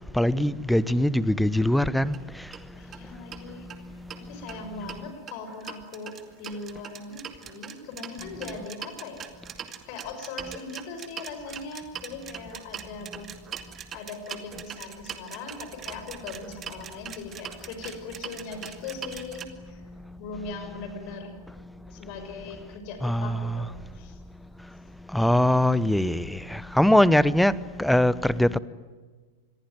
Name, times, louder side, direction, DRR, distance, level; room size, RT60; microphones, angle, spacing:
voice 1, 0.1-2.2 23.0-23.6 25.1-28.6, left 1 dB, ahead, 0.9 m, -22 dB
sound 1, 2.0-2.2 2.5-2.6 2.9-3.0 3.3-4.2 4.5-19.4, right 8 dB, 25° right, 2.3 m, -41 dB
voice 2, 2.8-3.7 4.1-13.3 13.9-19.8 20.2-21.3 21.9-24.2, left 4 dB, 45° left, 5.9 m, -40 dB
27.0 x 22.0 x 9.4 m
figure-of-eight pair, 90°, 0 cm